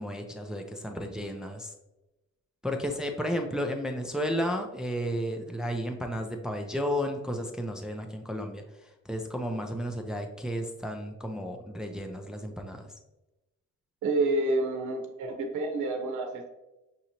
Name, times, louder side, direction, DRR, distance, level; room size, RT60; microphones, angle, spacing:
voice 1, 0.0-1.7 2.6-12.9, equal, ahead, 3 dB, 0.5 m, -33 dB
voice 2, 14.0-16.5, right 2 dB, 75° right, 3 dB, 0.8 m, -28 dB
6.1 x 2.7 x 2.9 m, 1.0 s
cardioid pair, 90°, 30 cm